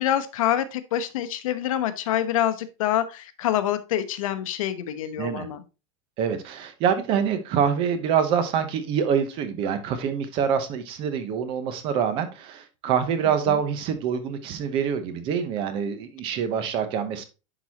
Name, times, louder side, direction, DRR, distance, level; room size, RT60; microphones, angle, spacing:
voice 1, 0.0-5.6 13.5-13.6, left 11 dB, 80° left, 12 dB, 0.9 m, -26 dB
voice 2, 6.2-17.2, right 7 dB, 30° right, 10 dB, 0.8 m, -25 dB
10.5 x 4.0 x 2.9 m, 0.29 s
supercardioid pair, 170°, 17 cm